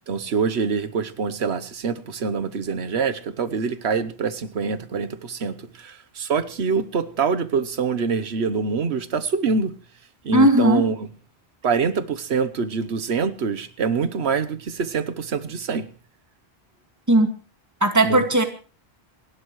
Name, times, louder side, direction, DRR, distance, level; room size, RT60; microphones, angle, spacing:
voice 1, 0.1-9.7 10.2-11.1 11.6-15.8 18.0-18.2, right 5 dB, 85° right, 12 dB, 1.3 m, -25 dB
voice 2, 10.3-10.8 17.1-17.3 17.8-18.4, right 1 dB, 15° right, 6 dB, 1.9 m, -17 dB
27.5 x 12.0 x 3.1 m, 0.37 s
omnidirectional pair, 1.1 m